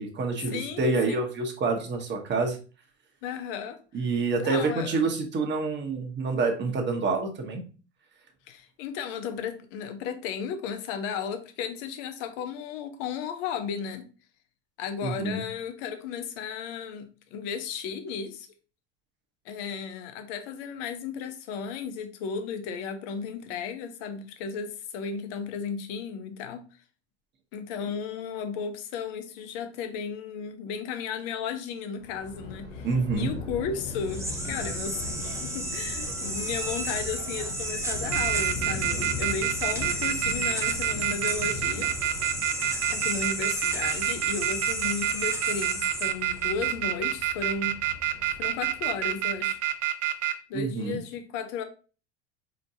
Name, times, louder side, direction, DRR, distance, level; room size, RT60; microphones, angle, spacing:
voice 1, 0.0-2.6 3.9-7.6 15.0-15.4 32.8-33.3 50.5-51.0, right 4 dB, 30° right, 3 dB, 1.1 m, -27 dB
voice 2, 0.5-1.3 3.2-3.8 4.4-5.0 8.5-14.0 14.8-18.5 19.5-26.6 27.5-32.9 33.1-41.9 42.9-47.8 48.4-49.6 50.5-51.6, left 6 dB, 60° left, 7 dB, 0.8 m, -34 dB
Thunder, 32.0-49.4, left 3 dB, 90° left, 1.1 m, -39 dB
sound 1, 33.9-46.8, right 1 dB, 10° right, 0.9 m, -33 dB
sound 2, 35.0-35.4 36.1-36.7 37.2-37.5 37.8-50.3, right 13 dB, 45° right, 0.6 m, -27 dB
4.3 x 3.0 x 2.6 m, 0.35 s
hypercardioid pair, 80°, 35 cm